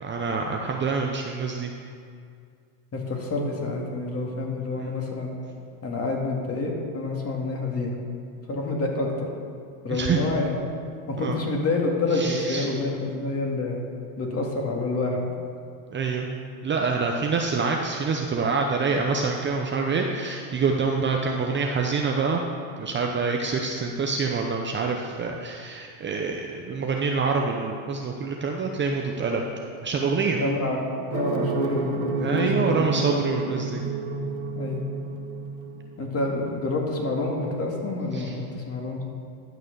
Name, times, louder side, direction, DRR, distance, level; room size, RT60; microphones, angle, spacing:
voice 1, 0.0-1.7 4.8-4.9 9.9-10.2 11.2-11.4 12.1-12.7 15.9-16.3 16.6-22.4 22.8-29.4 29.8-30.4 32.2-33.8 38.1-38.3, right 4 dB, 25° right, 1 dB, 0.7 m, -26 dB
voice 2, 2.9-5.3 5.8-8.0 8.5-9.3 9.8-10.6 11.1-13.8 14.2-15.3 21.0-21.1 29.5-29.7 30.4-32.9 34.5-34.8 36.0-39.0, left 2 dB, 30° left, 0 dB, 2.3 m, -28 dB
sound 1, 31.1-36.2, right 4 dB, 70° right, 1.4 m, -30 dB
11.0 x 6.3 x 6.7 m, 2.3 s
supercardioid pair, 120°, 48 cm